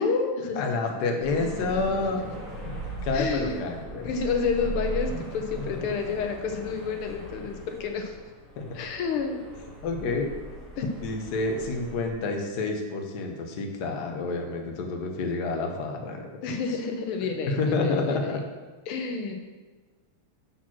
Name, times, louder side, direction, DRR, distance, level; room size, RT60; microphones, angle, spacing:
voice 1, 0.5-2.2 3.0-4.1 8.6-8.7 9.6-10.3 11.0-16.3 17.5-18.4, left 3 dB, 60° left, 2 dB, 1.3 m, -28 dB
sound 1, 1.2-12.1, right 2 dB, ahead, 1.4 m, -39 dB
voice 2, 3.1-3.6 4.0-8.2 8.7-9.4 10.8-11.0 16.4-18.4 18.9-19.3, left 5 dB, 80° left, 4 dB, 1.6 m, -30 dB
7.3 x 4.3 x 6.0 m, 1.3 s
omnidirectional pair, 2.4 m